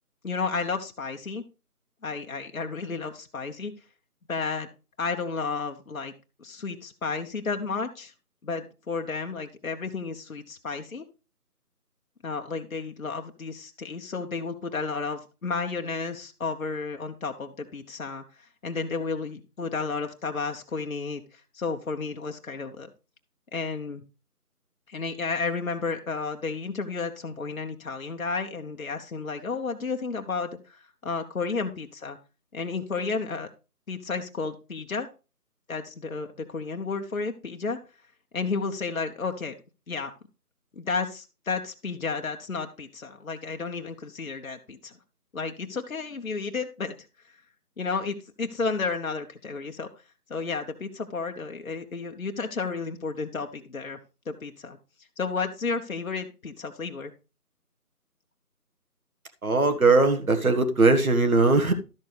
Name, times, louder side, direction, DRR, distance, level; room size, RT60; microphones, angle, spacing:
voice 1, 0.2-1.4 2.0-3.7 4.3-4.7 5.0-6.1 6.4-8.1 8.4-11.0 12.2-22.9 23.5-24.0 24.9-32.2 32.5-33.5 33.9-35.1 35.7-37.8 38.3-39.5 39.9-40.1 40.8-44.9 45.3-46.9 47.8-49.9 50.3-54.0 54.3-54.8 55.2-57.1, left 4 dB, 60° left, 5 dB, 1.0 m, -32 dB
voice 2, 59.4-61.7, right 3 dB, 65° right, 7 dB, 1.6 m, -20 dB
12.0 x 6.9 x 3.3 m, 0.31 s
figure-of-eight pair, 175°, 46 cm